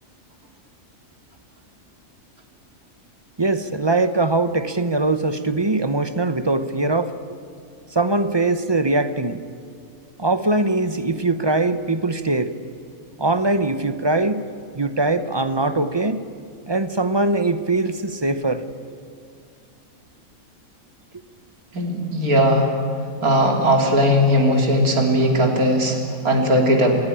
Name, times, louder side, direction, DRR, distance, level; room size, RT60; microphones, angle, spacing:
voice 1, 3.4-7.1 7.9-9.4 10.2-12.5 13.2-14.4 14.7-16.2 16.7-18.6, right 2 dB, 25° right, 11 dB, 0.7 m, -21 dB
voice 2, 21.7-22.7 23.2-27.0, equal, 90° right, 2 dB, 3.7 m, -18 dB
28.5 x 16.0 x 9.9 m, 2.3 s
omnidirectional pair, 1.5 m